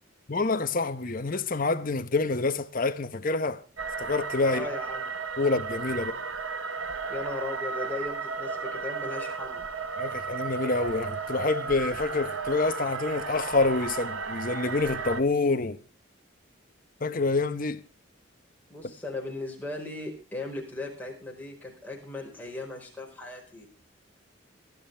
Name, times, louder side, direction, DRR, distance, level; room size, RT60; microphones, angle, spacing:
voice 1, 0.3-3.6 4.0-4.7 5.4-6.1 10.0-15.8 17.0-17.8, left 3 dB, 40° left, 0.9 m, -27 dB
sound 1, 3.8-15.2, right 5 dB, 75° right, 1.4 m, -34 dB
voice 2, 4.5-5.2 6.0-6.2 7.1-9.6 18.7-23.7, left 2 dB, 10° left, 4.6 m, -37 dB
20.5 x 12.0 x 3.4 m
head